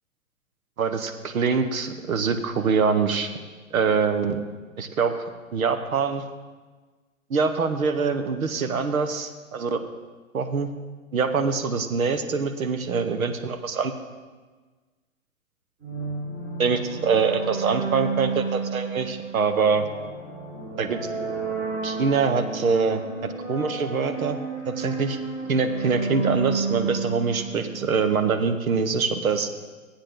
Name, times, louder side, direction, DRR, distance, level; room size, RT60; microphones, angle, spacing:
voice 1, 0.8-3.3 3.7-4.4 4.8-5.1 5.5-6.2 7.3-9.8 10.3-10.7 11.1-13.9 16.6-19.9 20.8-21.0 21.8-23.0 23.5-24.4 24.6-25.2 25.5-29.5, right 5 dB, 85° right, 8 dB, 1.1 m, -24 dB
sound 1, 15.8-28.3, right 4 dB, 25° right, 4.2 m, -31 dB
15.0 x 8.7 x 3.8 m, 1.4 s
hypercardioid pair, 140°, 41 cm